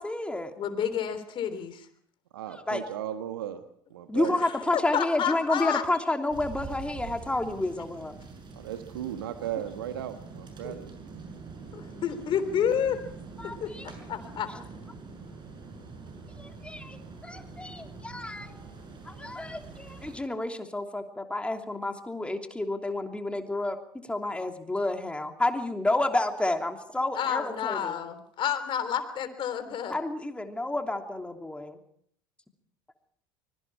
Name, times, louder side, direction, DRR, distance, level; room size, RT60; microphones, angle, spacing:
voice 1, 0.0-0.5 2.7-2.8 4.1-8.1 13.4-13.9 16.4-18.5 19.0-23.8 24.1-28.0 29.9-31.8, left 2 dB, 10° left, 4 dB, 3.0 m, -30 dB
voice 2, 0.6-1.9 4.2-5.8 11.7-13.0 13.6-14.5 27.1-30.0, left 8 dB, 45° left, 10 dB, 3.5 m, -30 dB
voice 3, 2.3-3.6 3.9-4.4 8.5-10.9, right 10 dB, 80° right, 8 dB, 1.5 m, -36 dB
sound 1, 6.3-20.2, right 4 dB, 40° right, 7.1 m, -44 dB
24.5 x 22.5 x 4.8 m, 0.65 s
hypercardioid pair, 70°, 12 cm